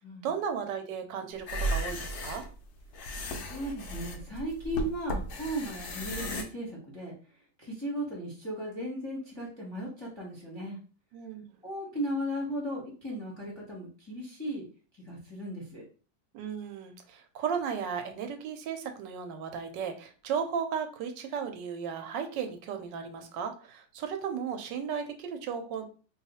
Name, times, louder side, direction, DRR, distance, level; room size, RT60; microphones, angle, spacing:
voice 1, 0.2-2.5 11.1-11.4 16.3-25.8, right 7 dB, 75° right, 6 dB, 1.2 m, -35 dB
Pencil on Paper on Wood Lines and Scribbles, 1.4-6.4, equal, 90° left, 0.6 m, -35 dB
voice 2, 3.4-7.1 7.6-10.8 11.6-14.7 15.0-15.8, equal, 25° left, -3 dB, 0.7 m, -36 dB
2.7 x 2.4 x 4.0 m, 0.37 s
omnidirectional pair, 2.0 m